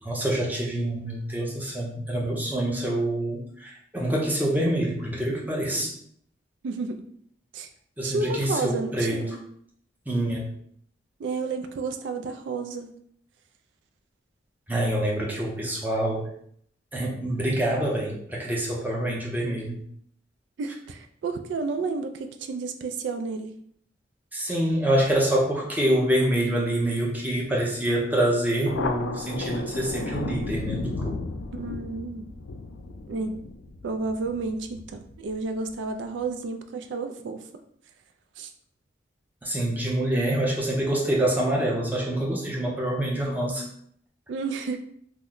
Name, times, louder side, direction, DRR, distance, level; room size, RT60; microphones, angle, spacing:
voice 1, 0.0-5.9 8.0-9.2 10.1-10.5 14.7-16.3 16.9-19.8 24.3-31.1 39.4-43.6, right 1 dB, 10° right, -3 dB, 0.7 m, -26 dB
voice 2, 6.6-7.1 7.5-7.7 8.0-9.4 11.2-12.9 20.6-23.5 31.6-32.3 33.1-33.4 33.8-37.4 38.4-38.5 44.3-44.8, right 4 dB, 70° right, 7 dB, 0.3 m, -31 dB
Thunder, 28.6-35.7, left 3 dB, 85° left, 0.4 m, -34 dB
3.0 x 2.1 x 3.7 m, 0.66 s
head